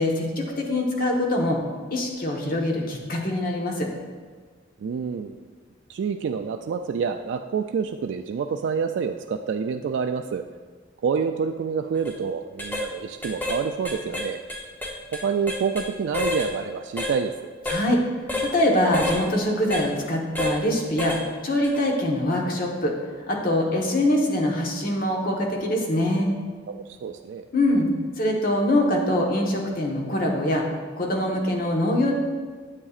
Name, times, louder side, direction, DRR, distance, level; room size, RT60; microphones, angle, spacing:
voice 1, 0.0-1.6 1.9-3.9 17.7-18.0 18.4-21.2 21.4-22.9 23.3-26.3 27.5-30.6 31.0-32.1, left 1 dB, 50° left, 0 dB, 1.2 m, -23 dB
voice 2, 4.8-5.5 5.9-10.4 11.0-14.4 15.2-17.5 26.7-27.4, right 6 dB, 70° right, 5 dB, 0.3 m, -27 dB
sound 1, 11.9-12.1 12.6-12.9 13.2-13.6 13.8-15.9 16.1-16.5 17.0-17.1 17.7-17.8 18.3-18.5 18.9-19.2 19.7-19.8 20.4-20.6 21.0-21.2 21.6-21.8, left 2 dB, 10° left, 0.8 m, -28 dB
9.7 x 7.4 x 2.4 m, 1.5 s
head